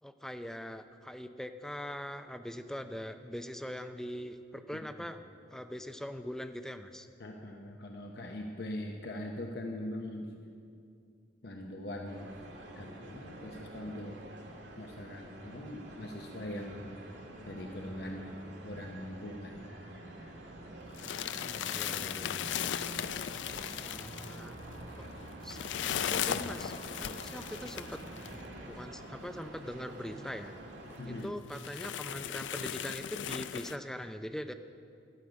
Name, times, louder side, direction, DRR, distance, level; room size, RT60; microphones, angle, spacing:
voice 1, 0.0-5.2 5.5-7.1 21.3-22.6 23.7-24.6 25.0-25.1 25.4-25.6 26.1-28.0 28.6-30.5 31.0-34.5, equal, 5° left, 9 dB, 0.5 m, -42 dB
voice 2, 7.2-10.3 11.4-12.3 12.8-14.2 14.8-16.9 17.5-19.7 31.0-31.3, left 1 dB, 65° left, 2 dB, 0.9 m, -41 dB
sound 1, 12.1-31.2, right 1 dB, 75° right, 2.2 m, -47 dB
sound 2, 20.9-28.4 29.2-29.3 29.6-29.7 30.4-30.5 30.9-31.0 31.5-33.8, left 9 dB, 85° left, 0.4 m, -37 dB
13.0 x 6.6 x 9.7 m, 2.4 s
head